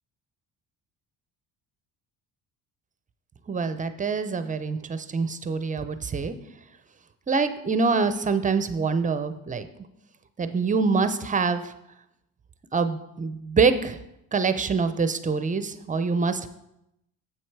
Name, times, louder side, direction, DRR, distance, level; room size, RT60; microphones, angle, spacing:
voice 1, 3.5-6.3 7.3-9.7 10.4-11.6 12.7-14.0 14.3-16.5, right 4 dB, 20° right, 11 dB, 0.5 m, -25 dB
7.8 x 6.2 x 4.6 m, 0.83 s
cardioid pair, 110°, 37 cm